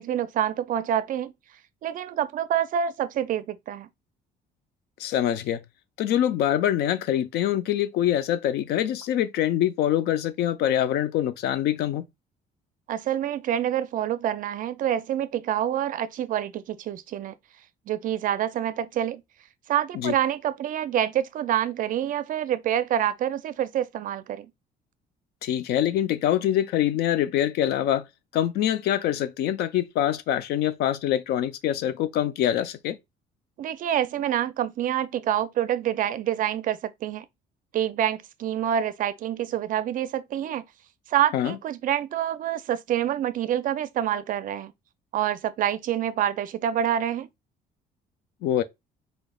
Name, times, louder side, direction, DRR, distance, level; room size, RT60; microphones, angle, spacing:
voice 1, 0.0-1.3 1.8-3.9 12.9-17.3 17.9-19.2 19.7-24.5 33.6-37.2 37.7-40.6 41.1-44.7 45.1-47.3, right 10 dB, 55° right, 0.4 m, -27 dB
voice 2, 5.0-5.6 6.0-12.0 19.9-20.1 25.4-28.1 28.3-33.0 41.3-41.6 48.4-48.6, left 11 dB, 75° left, 0.5 m, -24 dB
4.0 x 3.3 x 2.2 m
cardioid pair, 110°, 17 cm